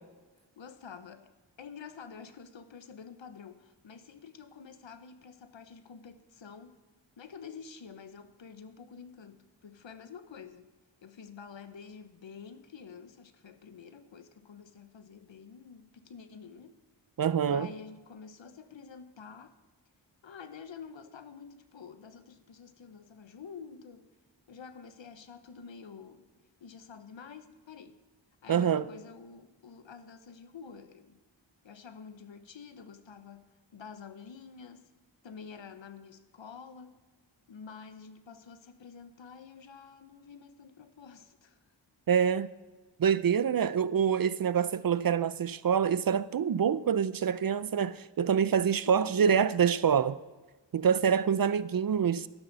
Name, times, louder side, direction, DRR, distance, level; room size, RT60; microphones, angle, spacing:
voice 1, 0.6-1.3 1.6-6.8 7.2-10.7 11.0-16.8 17.5-19.6 20.2-24.1 24.5-26.2 26.6-28.0 28.4-31.2 31.6-34.9 35.2-37.0 37.5-41.6 48.8-49.4, left 6 dB, 75° left, 1.1 m, -48 dB
voice 2, 17.2-17.7 28.5-28.8 42.1-42.5 43.0-50.2 50.7-52.3, right 7 dB, 50° right, 0.5 m, -26 dB
12.5 x 12.0 x 4.0 m
wide cardioid pair, 70°, 46 cm